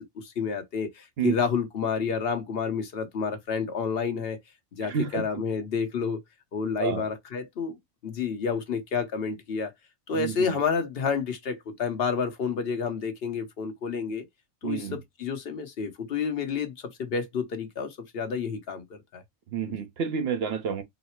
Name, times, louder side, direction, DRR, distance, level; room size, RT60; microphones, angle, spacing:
voice 1, 0.0-4.4 4.7-6.2 6.5-7.8 8.0-9.7 10.1-14.2 14.6-19.2 19.7-19.8, left 5 dB, 55° left, 1.0 m, -30 dB
voice 2, 4.8-5.2 6.8-7.0 10.1-10.6 14.6-15.0 19.5-20.8, right 7 dB, 55° right, 0.9 m, -29 dB
4.0 x 2.0 x 4.3 m
omnidirectional pair, 1.3 m